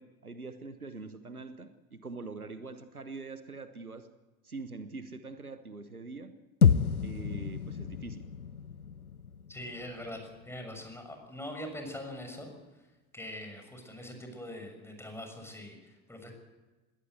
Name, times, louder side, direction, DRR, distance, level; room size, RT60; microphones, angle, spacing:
voice 1, 0.0-4.1 4.4-6.3 7.0-8.3, right 3 dB, 90° right, 11 dB, 1.2 m, -44 dB
sound 1, 6.6-11.0, left 7 dB, 85° left, 0.7 m, -29 dB
voice 2, 9.5-12.5 12.8-12.9 13.1-16.3, left 1 dB, 5° left, 4 dB, 6.4 m, -43 dB
20.5 x 18.0 x 8.1 m, 1.2 s
figure-of-eight pair, 70°, 43 cm